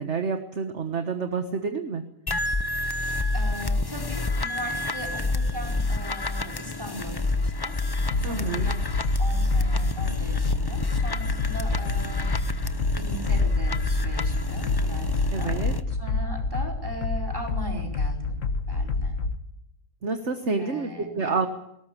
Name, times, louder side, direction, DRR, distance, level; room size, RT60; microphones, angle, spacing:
voice 1, 0.0-2.0 8.2-8.7 15.3-15.8 20.0-21.5, right 4 dB, 50° right, 7 dB, 1.6 m, -28 dB
sound 1, 2.3-15.8, left 2 dB, 25° left, 0.6 m, -28 dB
voice 2, 3.3-7.7 8.1-12.3 13.0-15.6 15.9-19.2 20.6-21.5, equal, 15° right, 1 dB, 4.5 m, -39 dB
sound 2, 8.1-19.4, left 3 dB, 55° left, 1.7 m, -28 dB
20.0 x 18.5 x 10.0 m, 0.80 s
omnidirectional pair, 1.6 m